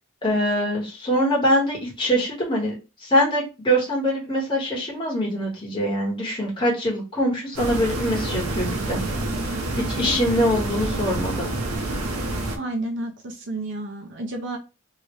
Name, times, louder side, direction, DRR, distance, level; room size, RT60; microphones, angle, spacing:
voice 1, 0.2-2.7 3.0-9.0 9.9-11.5, equal, 20° left, -3 dB, 1.2 m, -23 dB
sound 1, 7.5-12.6, right 2 dB, 90° right, 0.8 m, -28 dB
voice 2, 12.6-14.6, right 2 dB, 55° right, 3 dB, 0.7 m, -31 dB
3.0 x 2.7 x 3.0 m, 0.29 s
head